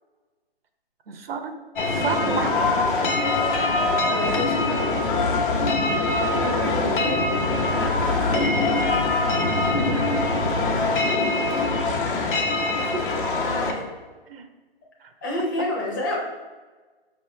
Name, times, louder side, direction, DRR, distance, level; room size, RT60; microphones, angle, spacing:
voice 1, 1.1-1.6 1.8-2.8 6.4-7.0 12.9-13.3 14.3-14.5 15.0-15.1 15.4-15.7, right 4 dB, 65° right, 6 dB, 0.7 m, -31 dB
sound 1, 1.8-13.7, left 3 dB, 55° left, 0.9 m, -23 dB
voice 2, 4.0-5.4 6.4-7.2 7.7-8.1 9.9-10.2 10.7-11.3 13.3-13.9 15.2-16.2, left 2 dB, 20° left, -2 dB, 0.6 m, -31 dB
5.2 x 3.0 x 3.1 m, 1.3 s
hypercardioid pair, 160°, 31 cm